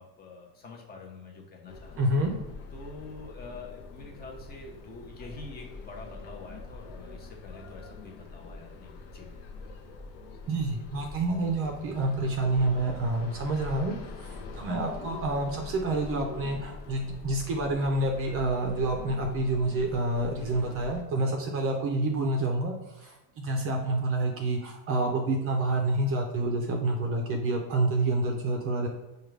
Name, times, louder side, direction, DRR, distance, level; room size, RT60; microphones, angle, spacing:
voice 1, 0.0-2.1 2.7-9.3, left 3 dB, 20° left, 0 dB, 0.7 m, -46 dB
sound 1, 1.7-21.0, left 4 dB, 55° left, 0.8 m, -44 dB
voice 2, 2.0-2.3 10.5-28.9, right 2 dB, 30° right, 2 dB, 0.5 m, -28 dB
4.7 x 2.3 x 3.2 m, 1.0 s
supercardioid pair, 135°, 43 cm